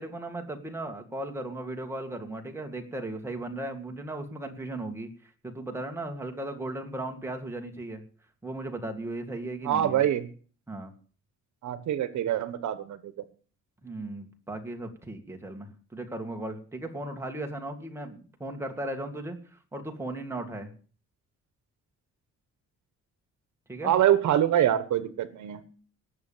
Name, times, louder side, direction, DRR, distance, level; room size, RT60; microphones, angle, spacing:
voice 1, 0.0-8.0 8.4-10.0 10.7-10.9 13.8-20.7 23.7-23.9, right 1 dB, 10° right, 3 dB, 2.0 m, -36 dB
voice 2, 9.6-10.2 11.6-13.1 23.8-25.8, right 11 dB, 70° right, 14 dB, 1.2 m, -25 dB
18.5 x 7.1 x 7.3 m, 0.41 s
cardioid pair, 165°, 30 cm